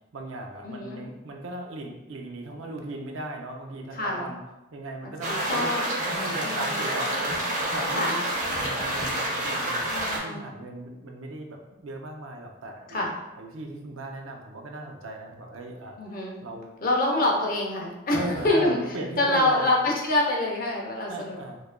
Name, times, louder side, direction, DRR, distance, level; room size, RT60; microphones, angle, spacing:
voice 1, 0.1-4.4 4.7-5.7 6.0-7.4 7.7-8.2 8.5-13.1 13.4-16.0 16.4-16.7 18.1-19.7 21.1-21.6, right 1 dB, 90° right, 3 dB, 0.5 m, -37 dB
voice 2, 0.6-1.0 3.9-4.2 5.0-5.8 6.4-6.9 7.9-8.2 9.9-10.4 12.9-13.1 16.0-16.4 16.8-18.2 18.4-18.8 19.2-21.4, left 2 dB, 45° left, -1 dB, 0.7 m, -26 dB
sound 1, 5.2-10.2, right 1 dB, 40° right, 0.7 m, -28 dB
4.6 x 2.5 x 2.2 m, 0.99 s
head